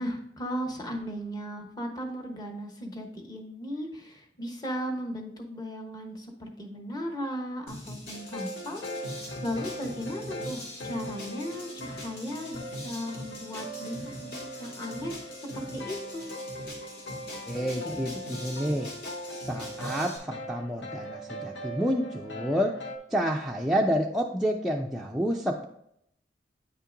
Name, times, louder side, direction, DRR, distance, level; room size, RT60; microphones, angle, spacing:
voice 1, 0.0-15.2 15.5-16.3, equal, 25° left, 3 dB, 0.9 m, -36 dB
sound 1, 7.7-20.2, left 1 dB, 65° left, 1.9 m, -42 dB
sound 2, 8.1-23.0, equal, 85° left, 0.9 m, -41 dB
voice 2, 17.5-18.9 19.3-22.7 23.1-25.7, equal, ahead, -1 dB, 0.3 m, -29 dB
8.7 x 5.5 x 2.5 m, 0.74 s
head